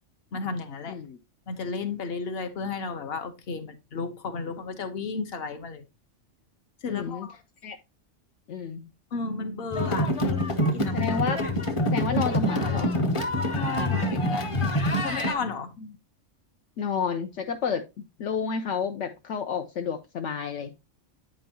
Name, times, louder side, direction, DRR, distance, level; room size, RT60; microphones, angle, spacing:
voice 1, 0.3-1.0 1.5-5.8 6.8-7.4 9.1-10.4 10.7-11.1 13.5-15.9, left 4 dB, 55° left, 1.1 m, -33 dB
voice 2, 0.9-1.2 6.9-7.3 7.6-7.8 8.5-8.9 10.9-11.4 11.9-12.9 16.8-20.7, left 6 dB, 75° left, 1.0 m, -30 dB
sound 1, 9.7-15.3, equal, 30° left, 0.8 m, -26 dB
8.6 x 5.5 x 2.8 m
omnidirectional pair, 1.3 m